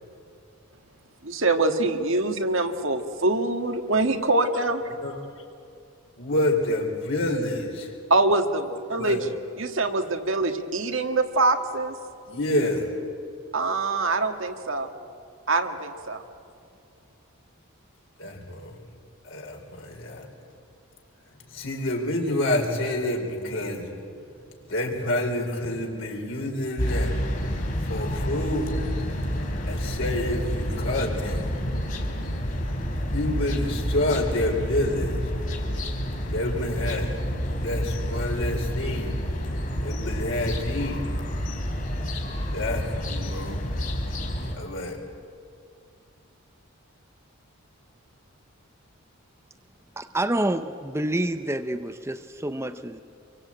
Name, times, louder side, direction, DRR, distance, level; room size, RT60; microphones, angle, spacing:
voice 1, 1.2-4.8 8.1-9.3 9.6-12.0 13.5-14.9 15.5-16.2, right 2 dB, 65° right, 6 dB, 1.8 m, -24 dB
voice 2, 6.2-7.9 9.0-9.2 12.3-12.9 18.2-18.7 19.2-20.3 21.5-23.9 24.7-27.1 27.8-28.7 29.7-31.5 33.1-35.3 36.3-37.1 37.5-39.1 39.8-41.0 42.5-43.7 44.6-45.0, left 1 dB, 60° left, 0 dB, 4.0 m, -28 dB
sound 1, 26.8-44.6, equal, 40° left, 4.2 m, -29 dB
voice 3, 50.0-53.0, right 1 dB, 10° right, 9 dB, 0.6 m, -28 dB
27.0 x 23.5 x 8.8 m, 2.5 s
head